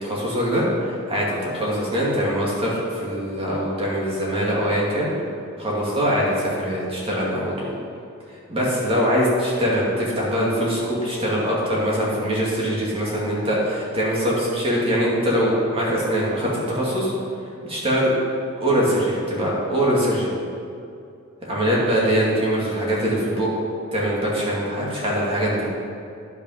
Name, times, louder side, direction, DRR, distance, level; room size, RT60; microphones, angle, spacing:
voice 1, 0.0-5.1 5.6-7.7 8.5-17.1 17.6-18.1 18.6-20.3 21.5-23.5 23.9-25.7, equal, 25° right, -5 dB, 2.2 m, -22 dB
10.5 x 5.8 x 5.6 m, 2.5 s
head